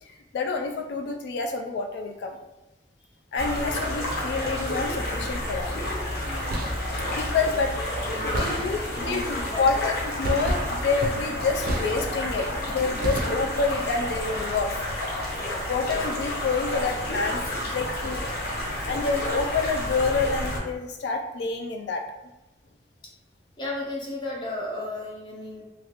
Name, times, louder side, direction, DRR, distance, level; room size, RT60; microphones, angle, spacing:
voice 1, 0.0-2.4 3.3-5.7 7.2-7.7 8.2-9.9 10.2-14.8 15.7-17.4 17.7-18.2 18.9-22.0, left 4 dB, 80° left, 3 dB, 0.3 m, -28 dB
sound 1, 3.4-20.6, left 1 dB, 65° left, 0.8 m, -30 dB
sound 2, 6.4-7.0 8.3-9.1 10.2-12.4 13.0-13.8, right 1 dB, 55° right, 0.4 m, -31 dB
voice 2, 8.0-9.7 23.6-25.6, left 1 dB, 25° left, -3 dB, 0.7 m, -34 dB
2.9 x 2.4 x 2.9 m, 1.0 s
head